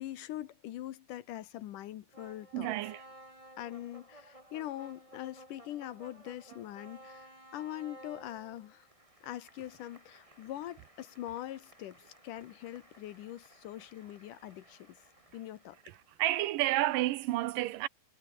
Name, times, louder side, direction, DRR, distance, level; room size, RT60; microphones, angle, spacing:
voice 1, 0.0-2.8 3.6-8.9 9.2-15.0 15.3-15.8, left 13 dB, 75° left, 2.5 m, -43 dB
sound 1, 2.1-16.3, right 1 dB, 10° right, 7.2 m, -56 dB
voice 2, 2.5-3.0 16.2-17.9, right 16 dB, 80° right, 2.4 m, -30 dB
omnidirectional pair, 3.9 m